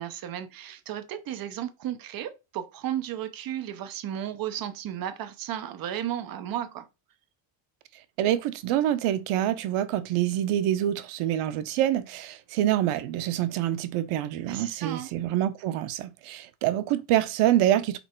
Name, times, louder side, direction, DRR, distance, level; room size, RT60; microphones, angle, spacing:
voice 1, 0.0-6.9 14.5-15.1, right 11 dB, 45° right, 0.8 m, -34 dB
voice 2, 8.2-18.0, right 12 dB, 90° right, 0.8 m, -26 dB
5.4 x 4.3 x 4.4 m
cardioid pair, 170°, 49 cm